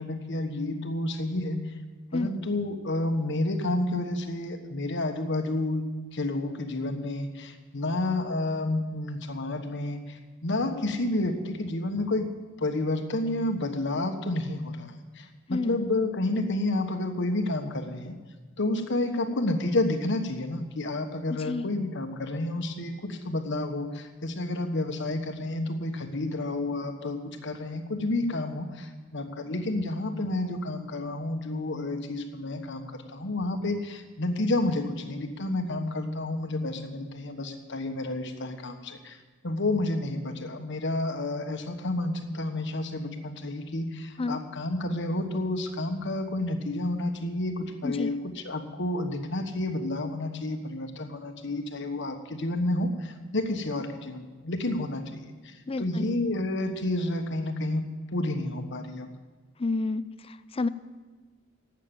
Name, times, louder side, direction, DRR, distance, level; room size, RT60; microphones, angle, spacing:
voice 1, 0.0-1.6 2.1-5.9 6.1-12.3 12.6-18.2 18.6-39.2 39.4-48.1 48.4-59.1, left 2 dB, 60° left, 6 dB, 1.3 m, -30 dB
voice 2, 47.8-48.1 55.7-56.1 59.6-60.7, left 3 dB, 30° left, 14 dB, 0.4 m, -30 dB
12.0 x 8.3 x 9.0 m, 1.3 s
head